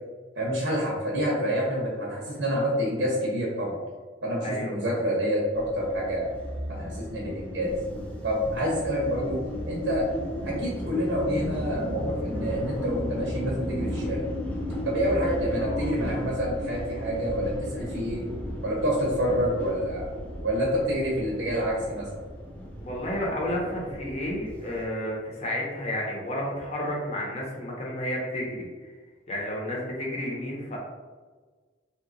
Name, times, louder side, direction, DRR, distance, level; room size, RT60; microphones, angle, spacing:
voice 1, 0.3-3.8 4.2-6.3 6.7-7.7 8.2-10.1 10.4-14.2 14.8-18.3 18.6-20.1 20.4-22.1, equal, 75° right, -4 dB, 0.7 m, -28 dB
voice 2, 4.4-5.0 15.6-15.9 22.8-28.9 29.3-30.8, left 1 dB, 35° left, -3 dB, 0.7 m, -31 dB
sound 1, 5.5-24.8, equal, 5° left, 0.4 m, -35 dB
2.8 x 2.2 x 3.7 m, 1.4 s
head